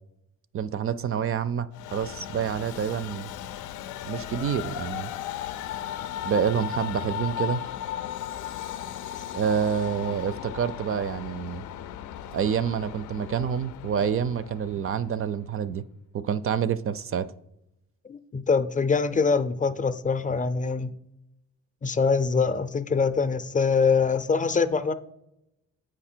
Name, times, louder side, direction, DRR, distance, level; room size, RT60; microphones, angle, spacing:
voice 1, 0.5-3.3 4.0-5.1 6.2-7.6 9.3-11.6 12.3-15.8 16.1-17.3, right 7 dB, 45° right, 0.4 m, -27 dB
Train, 1.7-15.2, left 10 dB, 80° left, 0.5 m, -36 dB
voice 2, 18.1-20.9 21.8-24.9, left 5 dB, 25° left, 0.5 m, -24 dB
8.1 x 5.0 x 4.4 m
cardioid pair, 90°, 30 cm